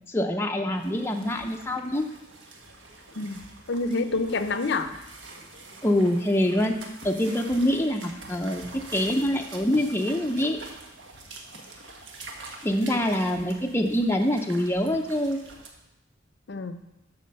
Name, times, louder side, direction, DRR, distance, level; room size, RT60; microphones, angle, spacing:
voice 1, 0.1-2.1 5.8-6.7 7.0-10.6 12.6-15.4, left 1 dB, 15° left, 2 dB, 0.6 m, -25 dB
sound 1, 0.7-15.7, right 2 dB, 70° right, 1.4 m, -45 dB
voice 2, 3.7-4.9 12.8-13.0 16.5-16.8, left 3 dB, 65° left, 10 dB, 0.6 m, -28 dB
11.5 x 4.3 x 6.8 m, 0.93 s
head